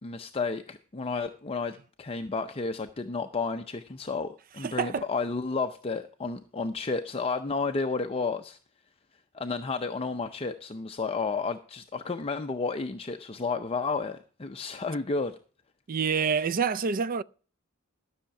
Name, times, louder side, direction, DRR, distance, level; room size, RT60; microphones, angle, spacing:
voice 1, 0.0-8.6 9.3-15.4, left 4 dB, 25° left, 0.5 m, -32 dB
voice 2, 4.6-5.0 15.9-17.2, right 6 dB, 40° right, 0.4 m, -27 dB
12.5 x 6.4 x 5.8 m
head